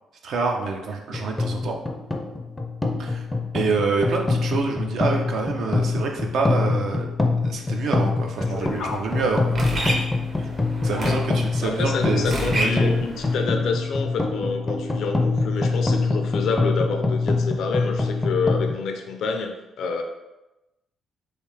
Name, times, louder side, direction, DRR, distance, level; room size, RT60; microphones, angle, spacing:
voice 1, 0.2-1.8 3.0-3.2 3.5-7.1 7.4-9.8 10.4-10.5 10.8-12.8, right 4 dB, 70° right, 2 dB, 0.6 m, -27 dB
sound 1, 1.1-18.7, left 3 dB, 15° left, 0.4 m, -25 dB
voice 2, 8.5-9.0 11.0-11.2 11.6-20.0, left 4 dB, 75° left, 4 dB, 0.5 m, -28 dB
sound 2, 8.5-13.4, right 1 dB, 50° right, 0.9 m, -31 dB
3.2 x 2.7 x 3.3 m, 0.99 s
cardioid pair, 90°, 0 cm